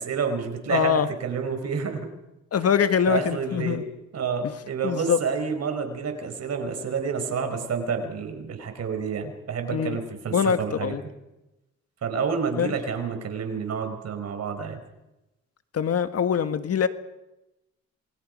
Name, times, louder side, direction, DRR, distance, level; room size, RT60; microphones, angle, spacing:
voice 1, 0.0-2.1 3.1-3.8 4.1-11.0 12.0-14.8, right 5 dB, 55° right, 6 dB, 5.0 m, -29 dB
voice 2, 0.7-1.1 2.5-3.8 4.8-5.2 9.7-10.0 10.3-11.0 12.6-12.7 15.7-16.9, left 7 dB, 55° left, 10 dB, 1.7 m, -23 dB
28.0 x 21.5 x 5.4 m, 0.95 s
cardioid pair, 90°, 30 cm